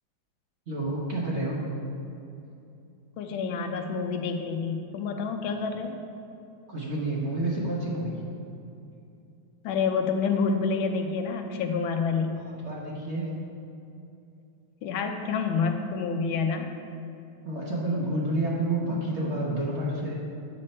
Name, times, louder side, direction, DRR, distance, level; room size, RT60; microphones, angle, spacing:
voice 1, 0.7-1.6 6.7-8.2 12.5-13.3 17.4-20.1, right 1 dB, 40° right, -4 dB, 1.1 m, -29 dB
voice 2, 3.2-6.0 9.6-12.4 14.8-16.7, left 5 dB, 85° left, 5 dB, 1.5 m, -28 dB
8.5 x 6.7 x 4.3 m, 2.7 s
omnidirectional pair, 2.2 m